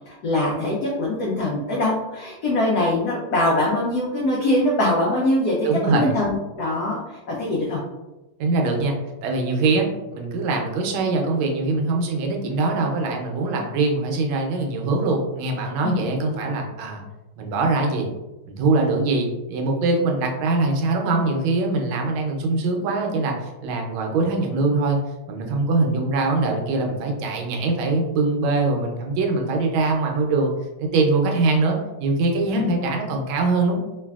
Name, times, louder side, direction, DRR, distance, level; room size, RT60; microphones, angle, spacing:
voice 1, 0.1-7.8 15.8-16.4 32.5-32.7, left 1 dB, 80° left, -4 dB, 0.8 m, -23 dB
voice 2, 5.6-6.1 8.4-8.9 9.2-17.0 17.4-18.1 18.5-25.0 25.3-30.5 30.8-33.8, right 3 dB, 75° right, 1 dB, 1.3 m, -22 dB
3.2 x 2.6 x 2.3 m, 1.1 s
omnidirectional pair, 2.3 m